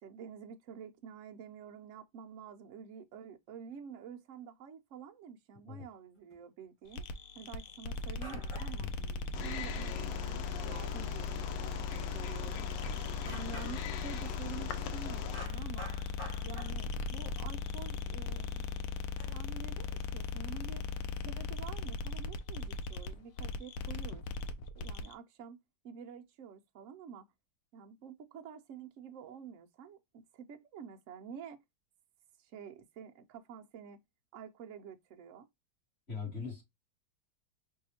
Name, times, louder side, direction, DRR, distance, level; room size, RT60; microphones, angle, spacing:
voice 1, 0.0-7.0 7.4-8.9 9.4-12.6 13.2-15.9 16.4-18.7 19.3-20.8 21.2-24.2 24.8-25.6 25.8-27.3 27.7-31.6 32.4-34.0 34.3-35.5, right 7 dB, 75° right, 0.7 m, -49 dB
sound 1, 6.3-6.4 7.7-7.8 8.2-8.9 9.3-9.4 9.7-9.8 10.2-10.5 11.1-11.3 11.6-11.7 12.2-12.3 12.6-12.7 13.2-14.1 15.3-17.0 17.9-18.0 19.2-19.4, equal, 55° left, 3.2 m, -49 dB
sound 2, 6.9-25.1, left 5 dB, 70° left, 0.8 m, -38 dB
voice 2, 8.8-9.4 36.1-36.6, left 5 dB, 35° left, 2.6 m, -42 dB
Wild animals, 9.3-15.5, left 8 dB, 85° left, 1.3 m, -44 dB
5.4 x 2.7 x 2.8 m
omnidirectional pair, 1.9 m